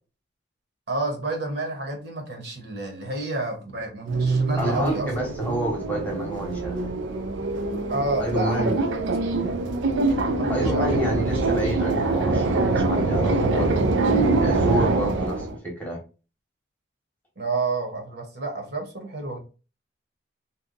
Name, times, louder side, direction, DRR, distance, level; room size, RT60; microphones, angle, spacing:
voice 1, 0.9-5.1 7.9-8.6 9.1-9.3 10.3-11.1 17.4-19.4, right 2 dB, 60° right, 1 dB, 1.0 m, -29 dB
sound 1, 4.1-15.6, right 3 dB, 85° right, 0.5 m, -24 dB
voice 2, 4.6-6.9 8.2-8.9 10.5-13.8 14.4-16.0, right 1 dB, 10° left, -1 dB, 0.9 m, -29 dB
2.7 x 2.3 x 3.7 m, 0.34 s
head